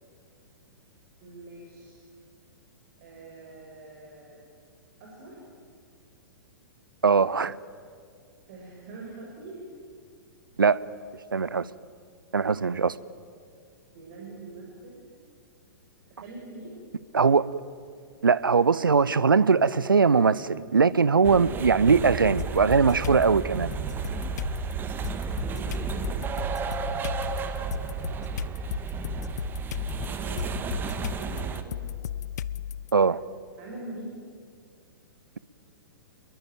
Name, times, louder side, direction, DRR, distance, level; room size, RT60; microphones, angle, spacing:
voice 1, 1.2-2.0 3.0-4.4 5.0-5.4 8.5-9.6 13.9-15.0 16.1-16.8 25.4-26.2 29.8-31.8 33.6-34.2, right 2 dB, 40° right, 5.9 m, -44 dB
voice 2, 7.0-7.6 10.6-10.8 11.3-11.7 12.3-13.0 17.1-17.5 18.2-23.7 32.9-33.2, right 5 dB, 70° right, 0.8 m, -21 dB
sound 1, 21.2-31.6, right 6 dB, 15° right, 1.7 m, -33 dB
sound 2, 22.4-23.2 23.7-32.9, left 10 dB, 50° left, 0.7 m, -35 dB
27.5 x 22.5 x 9.2 m
figure-of-eight pair, 110°, 11 cm